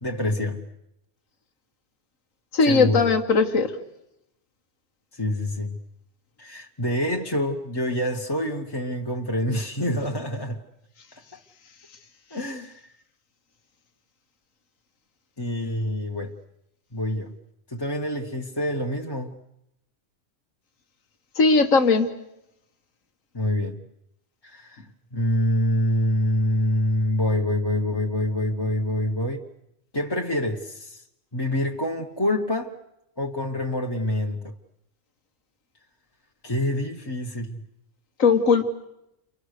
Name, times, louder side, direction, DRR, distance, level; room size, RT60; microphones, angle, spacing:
voice 1, 0.0-0.6 2.6-3.1 5.1-5.8 6.4-10.6 11.1-11.2 12.3-12.8 15.4-16.3 16.9-17.3 17.7-19.3 23.3-23.8 24.4-29.4 29.9-31.0 31.3-32.7 33.2-34.5 36.4-37.6, left 1 dB, 20° left, 1.2 m, -26 dB
voice 2, 2.5-3.7 21.4-22.1 38.2-38.6, left 4 dB, 85° left, 1.9 m, -18 dB
30.0 x 24.5 x 6.7 m
omnidirectional pair, 1.3 m